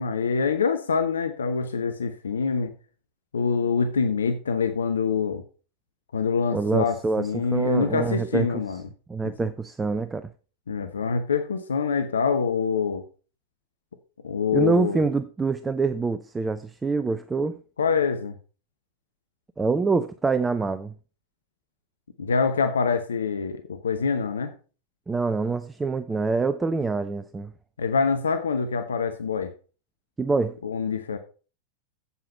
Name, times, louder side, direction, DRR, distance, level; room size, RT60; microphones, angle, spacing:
voice 1, 0.0-2.7 3.3-5.4 6.1-8.8 9.2-9.3 10.7-13.0 14.2-15.0 17.8-18.4 22.2-24.5 27.8-29.5 30.6-31.2, left 5 dB, 70° left, 0.9 m, -25 dB
voice 2, 6.5-8.6 9.1-10.3 14.5-17.6 19.6-20.9 25.1-27.5 30.2-30.6, right 4 dB, 15° right, 0.5 m, -25 dB
8.1 x 7.8 x 5.5 m
figure-of-eight pair, 90°, 0 cm